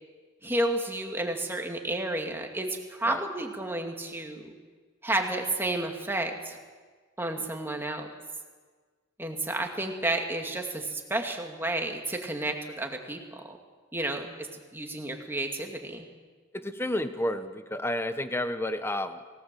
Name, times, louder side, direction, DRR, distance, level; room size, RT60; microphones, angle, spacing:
voice 1, 0.4-4.5 5.0-6.6 7.2-8.1 9.2-13.6 13.9-16.1, right 1 dB, 10° right, 3 dB, 2.3 m, -31 dB
voice 2, 16.5-19.2, left 1 dB, 10° left, 9 dB, 1.1 m, -31 dB
28.0 x 18.5 x 7.7 m, 1.5 s
head